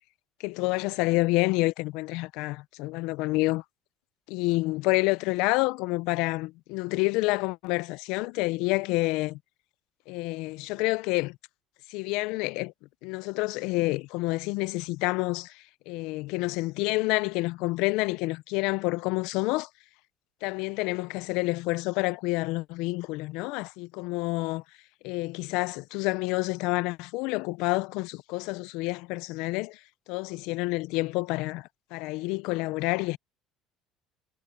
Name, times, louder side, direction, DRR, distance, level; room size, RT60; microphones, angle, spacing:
voice 1, 0.4-3.6 4.3-9.4 10.1-11.4 11.9-12.7 13.0-19.7 20.4-24.6 25.0-29.8 30.1-33.2, left 23 dB, 75° left, 0.5 m, -28 dB
supercardioid pair, 90°, 0 cm